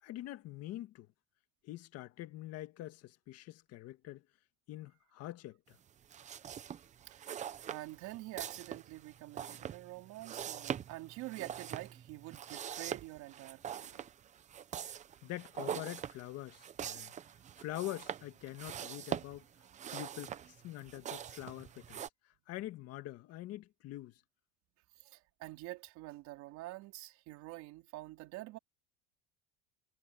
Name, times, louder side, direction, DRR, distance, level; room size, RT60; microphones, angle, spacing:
voice 1, 0.0-1.1 1.6-4.2 4.7-5.8 15.2-17.1 17.6-19.5 19.9-24.1, left 15 dB, 45° left, 1.7 m, -45 dB
sound 1, 6.0-22.1, right 9 dB, 20° right, 0.6 m, -43 dB
voice 2, 7.1-7.4 7.7-14.1 25.0-28.6, right 18 dB, 55° right, 4.1 m, -47 dB
cardioid pair, 170°, 33 cm